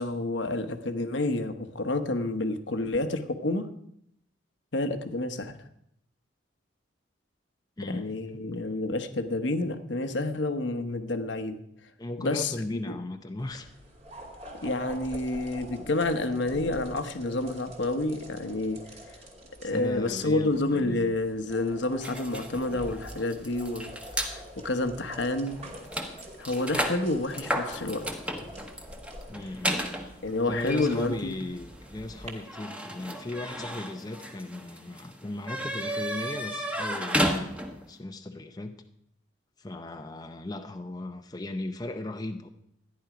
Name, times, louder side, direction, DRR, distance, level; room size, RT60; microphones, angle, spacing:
voice 1, 0.0-3.7 4.7-5.6 7.9-11.6 12.2-13.0 14.6-18.8 19.6-23.9 24.2-25.6 26.4-28.0 30.2-31.4, left 2 dB, 75° left, 7 dB, 1.1 m, -29 dB
voice 2, 7.8-8.6 12.0-13.7 19.6-21.1 29.3-30.2 30.5-38.8 39.6-42.5, left 2 dB, 20° left, 6 dB, 0.6 m, -37 dB
sound 1, 13.4-32.3, equal, 35° right, 2.5 m, -46 dB
sound 2, 22.0-24.3 25.1-25.2 25.5-37.9, equal, 5° right, 1.2 m, -34 dB
13.5 x 10.5 x 5.0 m, 0.75 s
head